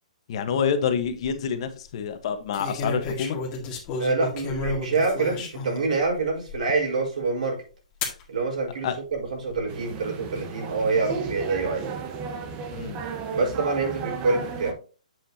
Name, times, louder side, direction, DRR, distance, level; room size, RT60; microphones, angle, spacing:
voice 1, 0.3-3.4 8.8-9.0 12.7-13.0, left 7 dB, 45° left, 8 dB, 1.3 m, -27 dB
sound 1, 0.8-1.3 2.5-5.9 6.5-6.6 8.0-8.2 9.1-9.6, left 3 dB, 25° left, 2.0 m, -32 dB
voice 2, 4.0-7.6 8.3-11.8 13.3-14.8, right 3 dB, 70° right, -1 dB, 4.6 m, -26 dB
sound 2, 9.7-14.7, right 5 dB, 25° right, 1.1 m, -34 dB
7.8 x 7.4 x 2.8 m, 0.34 s
hypercardioid pair, 155°, 4 cm